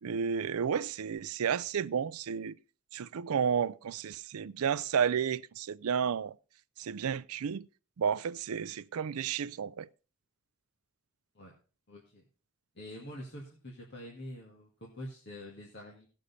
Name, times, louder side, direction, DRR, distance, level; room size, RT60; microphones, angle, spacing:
voice 1, 0.0-2.6 2.9-6.3 6.8-7.7 8.0-9.9, right 7 dB, 85° right, 0.4 m, -32 dB
voice 2, 11.9-12.2 12.8-16.1, left 1 dB, 50° left, 2.1 m, -46 dB
17.0 x 6.5 x 4.2 m
head